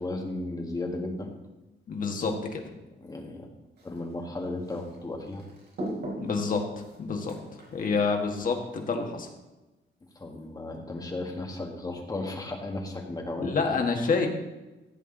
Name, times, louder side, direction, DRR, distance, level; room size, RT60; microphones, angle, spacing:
voice 1, 0.0-1.3 3.0-3.5 3.8-5.4 10.1-13.8, left 2 dB, 20° left, 1 dB, 1.6 m, -35 dB
voice 2, 1.9-2.6 6.2-9.3 13.4-14.3, left 4 dB, 45° left, 2 dB, 1.6 m, -28 dB
sound 1, 3.8-8.9, right 1 dB, 55° right, 4.4 m, -41 dB
15.5 x 8.0 x 3.9 m, 1.1 s
wide cardioid pair, 180°, 20 cm